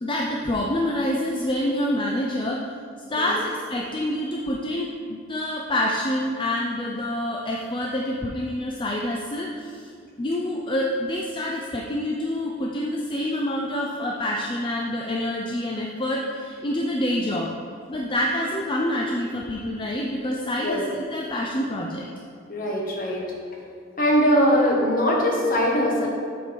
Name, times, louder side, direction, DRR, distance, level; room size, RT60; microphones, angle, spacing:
voice 1, 0.0-2.7 3.1-9.9 10.2-17.5 17.9-22.1, left 1 dB, 25° left, -2 dB, 0.5 m, -27 dB
voice 2, 22.5-23.2 24.0-26.1, equal, 45° left, -2 dB, 1.3 m, -21 dB
7.5 x 4.4 x 5.2 m, 2.3 s
head